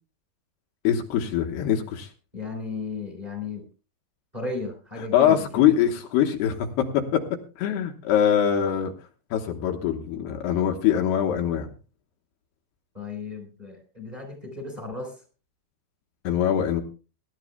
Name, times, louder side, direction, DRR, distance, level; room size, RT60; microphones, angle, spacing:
voice 1, 0.8-2.1 5.1-7.2 7.6-8.9 9.3-11.7 16.2-16.8, left 9 dB, 75° left, 2 dB, 3.0 m, -23 dB
voice 2, 2.3-3.6 4.3-5.7 12.9-15.1, left 3 dB, 10° right, 4 dB, 3.6 m, -35 dB
23.0 x 12.0 x 2.2 m, 0.34 s
omnidirectional pair, 4.8 m